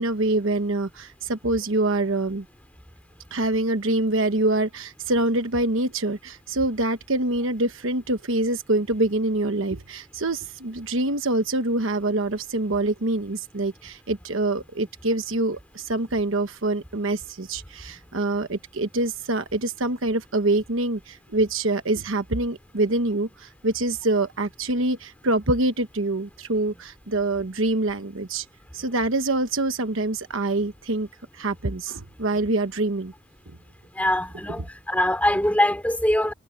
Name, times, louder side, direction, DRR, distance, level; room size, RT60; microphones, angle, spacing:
voice 1, 0.0-2.4 3.3-28.4 28.7-31.1 31.3-33.1, right 2 dB, 65° right, 1.2 m, -25 dB
voice 2, 33.9-36.3, left 1 dB, 5° left, 4.0 m, -23 dB
head